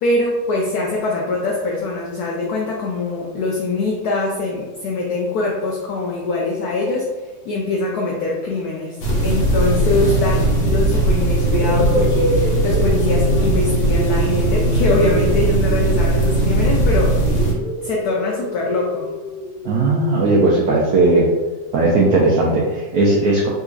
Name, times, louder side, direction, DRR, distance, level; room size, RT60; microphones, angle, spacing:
voice 1, 0.0-7.1 7.4-9.0 9.2-17.1 17.8-19.1, left 2 dB, 90° left, -2 dB, 0.8 m, -23 dB
sound 1, 9.0-17.5, right 1 dB, 65° left, 1.3 m, -18 dB
sound 2, 10.3-10.6 11.4-16.7 17.2-21.1, right 1 dB, 25° right, 1.2 m, -28 dB
voice 2, 19.6-21.3 21.7-23.5, right 2 dB, 85° right, -3 dB, 0.8 m, -16 dB
3.8 x 2.8 x 2.4 m, 1.2 s
omnidirectional pair, 2.2 m